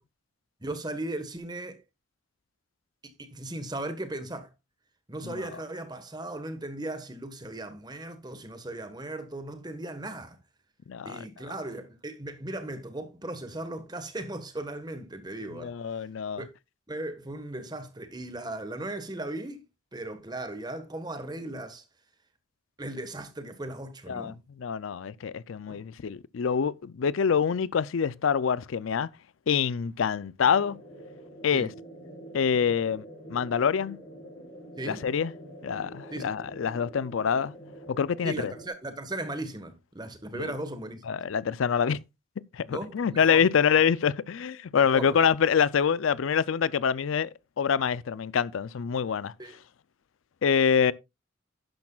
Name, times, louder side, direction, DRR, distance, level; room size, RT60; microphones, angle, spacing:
voice 1, 0.6-1.8 3.0-4.5 5.1-10.4 11.0-15.7 16.3-16.5 16.9-19.6 19.9-21.8 22.8-24.4 25.7-25.9 31.5-31.7 34.8-35.0 36.1-36.4 38.2-41.0 42.7-43.4 44.8-45.2 49.4-49.6, right 1 dB, 20° right, 1.4 m, -37 dB
voice 2, 10.9-11.2 15.6-16.4 24.1-29.1 29.5-30.8 31.4-31.7 32.3-33.0 33.3-34.0 34.8-35.3 35.6-37.5 37.9-38.5 40.3-40.5 41.1-42.0 42.5-49.3 50.4-50.9, left 7 dB, 75° left, 0.4 m, -26 dB
sound 1, 30.4-38.7, right 1 dB, 35° left, 3.8 m, -46 dB
11.5 x 10.5 x 2.3 m
head